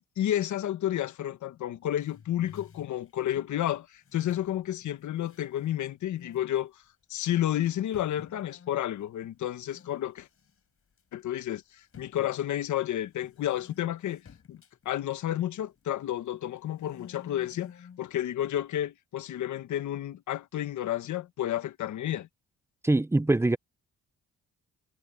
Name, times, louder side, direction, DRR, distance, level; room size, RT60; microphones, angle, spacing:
voice 1, 0.2-6.7 7.1-10.3 11.1-14.2 14.5-22.3, left 12 dB, 75° left, 1.4 m, -31 dB
sound 1, 2.0-3.5 4.0-5.8 6.1-6.5 7.1-7.2 7.6-10.0 10.3-10.6 11.0-11.1 11.9-15.9 16.4-18.1, left 6 dB, 45° left, 7.8 m, -53 dB
voice 2, 22.8-23.6, right 2 dB, 10° right, 0.7 m, -23 dB
cardioid pair, 90°, 30 cm